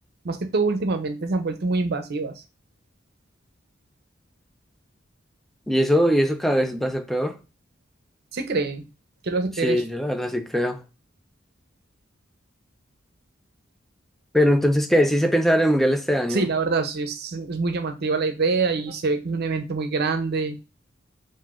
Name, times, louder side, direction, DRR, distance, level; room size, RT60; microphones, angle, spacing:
voice 1, 0.2-2.3 8.3-8.8 9.2-9.8 16.3-20.6, right 4 dB, 55° right, 0.6 m, -25 dB
voice 2, 5.7-7.4 9.6-10.8 14.3-16.4, equal, ahead, 0.4 m, -21 dB
5.5 x 2.6 x 2.4 m
head